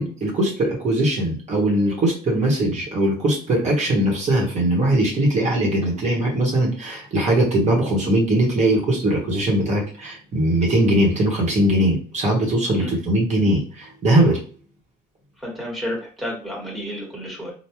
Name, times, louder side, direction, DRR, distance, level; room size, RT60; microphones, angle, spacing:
voice 1, 0.0-14.4, right 1 dB, 45° right, -2 dB, 1.3 m, -20 dB
voice 2, 15.4-17.5, equal, ahead, -3 dB, 1.4 m, -31 dB
3.5 x 2.4 x 3.0 m, 0.40 s
cardioid pair, 110°, 17 cm